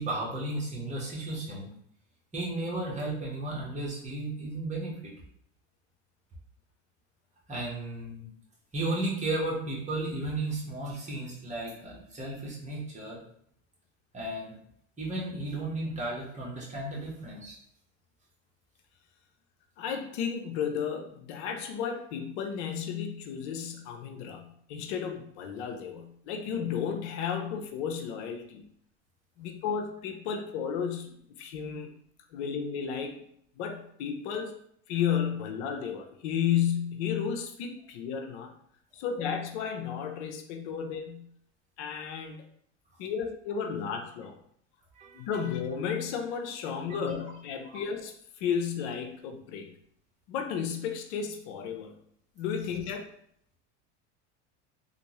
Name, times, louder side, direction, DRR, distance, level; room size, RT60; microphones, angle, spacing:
voice 1, 0.0-1.7 2.3-5.1 7.5-8.3 8.7-13.2 14.1-14.6 15.0-17.5 44.9-45.2 47.6-47.8, right 2 dB, 20° right, -4 dB, 1.4 m, -34 dB
voice 2, 19.8-28.7 29.4-31.9 32.3-33.2 33.6-34.5 34.9-38.5 38.9-41.3 41.8-42.4 43.0-44.4 45.1-49.7 50.3-52.0 52.4-53.1, left 7 dB, 75° left, 4 dB, 0.7 m, -33 dB
3.5 x 2.5 x 3.0 m, 0.67 s
supercardioid pair, 105°, 35 cm